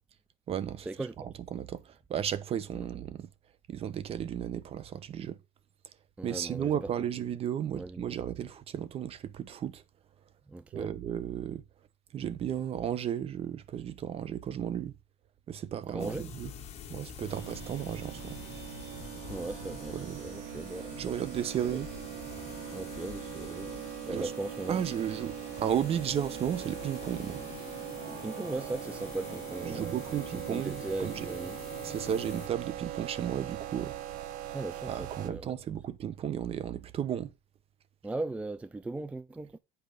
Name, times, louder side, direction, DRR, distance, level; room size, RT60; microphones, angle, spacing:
voice 1, 0.5-3.3 3.7-5.4 6.2-9.8 10.7-11.6 12.1-14.9 15.5-16.5 16.9-18.4 19.9-20.2 21.0-21.9 24.1-24.3 24.7-27.4 29.7-31.3 31.8-33.9 34.9-37.3, right 9 dB, 35° right, 0.9 m, -34 dB
voice 2, 6.2-6.9 7.7-8.1 10.5-10.9 15.9-16.3 19.3-21.2 21.6-21.8 22.7-23.8 24.0-24.8 28.2-31.6 34.5-35.5 38.0-39.6, right 2 dB, 5° right, 0.3 m, -38 dB
sound 1, 16.0-32.5, left 7 dB, 35° left, 1.7 m, -46 dB
sound 2, 17.3-35.3, right 11 dB, 55° right, 1.2 m, -41 dB
8.4 x 4.8 x 5.1 m
supercardioid pair, 120°, 18 cm